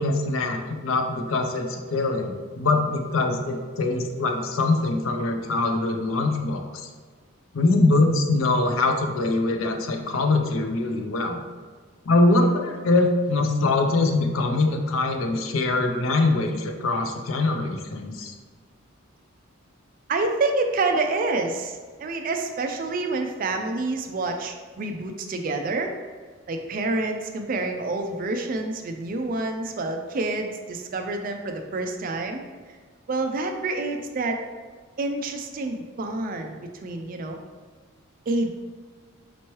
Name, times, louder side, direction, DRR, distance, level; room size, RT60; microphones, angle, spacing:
voice 1, 0.0-6.6 7.5-11.4 12.1-18.3, left 2 dB, 70° left, 4 dB, 0.5 m, -23 dB
voice 2, 20.1-25.9 26.5-32.4 33.1-34.4 35.0-37.4 38.3-38.5, right 2 dB, 40° right, 5 dB, 0.3 m, -28 dB
4.3 x 3.0 x 3.0 m, 1.5 s
head